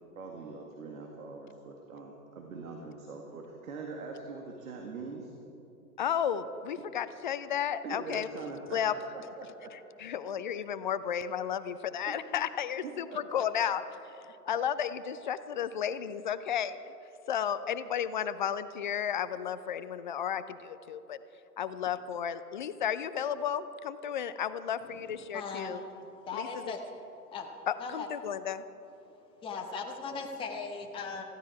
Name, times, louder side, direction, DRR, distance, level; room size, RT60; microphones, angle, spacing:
voice 1, 0.1-5.3 7.8-9.7 10.0-10.1 12.1-12.2 12.8-13.4, right 4 dB, 60° right, 1 dB, 2.1 m, -43 dB
voice 2, 6.0-8.3 8.7-8.9 9.7-13.8 14.2-16.9 17.3-21.2 21.6-25.8 26.3-26.7 27.7-28.6, left 8 dB, 30° left, 14 dB, 0.5 m, -33 dB
voice 3, 25.3-25.8 26.2-26.8 27.3-27.5 27.8-28.1 29.4-31.2, left 4 dB, 10° left, 2 dB, 1.0 m, -38 dB
19.5 x 15.0 x 4.6 m, 2.9 s
figure-of-eight pair, 115°, 47 cm